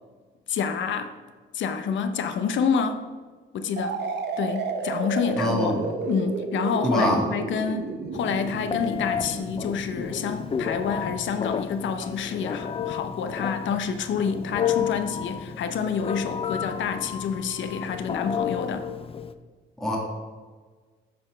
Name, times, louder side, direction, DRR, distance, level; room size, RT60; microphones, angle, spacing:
voice 1, 0.5-1.1 1.5-3.0 3.5-4.0 4.4-5.8 6.1-18.9, left 6 dB, 70° left, 9 dB, 0.7 m, -28 dB
sound 1, 3.8-11.4, right 4 dB, 60° right, 1.0 m, -33 dB
voice 2, 5.4-5.8 6.8-7.2 19.8-20.0, equal, ahead, -3 dB, 1.8 m, -23 dB
Telephone, 8.1-19.3, left 8 dB, 30° left, 0.4 m, -32 dB
7.6 x 4.3 x 4.9 m, 1.4 s
cardioid pair, 90°, 20 cm